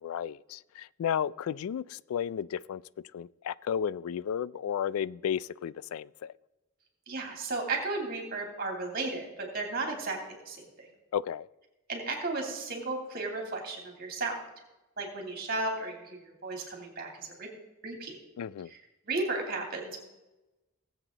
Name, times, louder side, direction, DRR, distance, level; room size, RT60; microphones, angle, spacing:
voice 1, 0.0-2.8 3.1-6.3 11.1-11.5 18.4-18.7, left 8 dB, 85° left, 0.3 m, -33 dB
voice 2, 7.1-10.9 11.9-14.4 15.0-17.5 17.8-18.2 18.7-18.8 19.1-20.0, right 3 dB, 45° right, 3.0 m, -34 dB
18.0 x 8.0 x 3.9 m
head